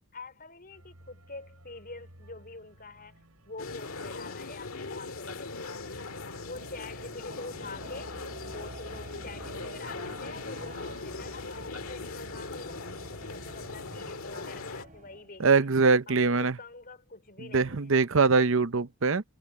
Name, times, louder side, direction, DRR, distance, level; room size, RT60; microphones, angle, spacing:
voice 1, 0.1-6.0 6.4-8.2 8.5-15.7 16.1-18.0, left 3 dB, 40° left, 4.1 m, -46 dB
sound 1, 0.7-15.2, right 1 dB, 80° right, 7.4 m, -59 dB
sound 2, 3.6-14.9, left 3 dB, 70° left, 1.9 m, -40 dB
sound 3, 6.2-15.4, right 1 dB, 35° right, 4.2 m, -48 dB
voice 2, 15.4-16.6 17.5-19.2, right 4 dB, 60° right, 0.8 m, -23 dB
head